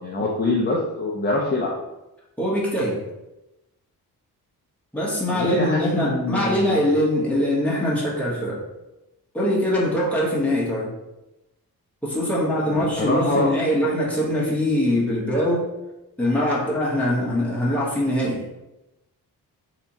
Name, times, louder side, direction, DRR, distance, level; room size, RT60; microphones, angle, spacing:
voice 1, 0.0-1.7 5.3-6.8 12.7-13.5, left 2 dB, 25° left, -3 dB, 0.6 m, -24 dB
voice 2, 2.4-3.0 4.9-8.6 9.3-10.9 12.0-15.7 16.2-18.4, left 1 dB, 5° left, -6 dB, 1.3 m, -23 dB
3.3 x 2.9 x 4.1 m, 0.96 s
wide cardioid pair, 115°, 39 cm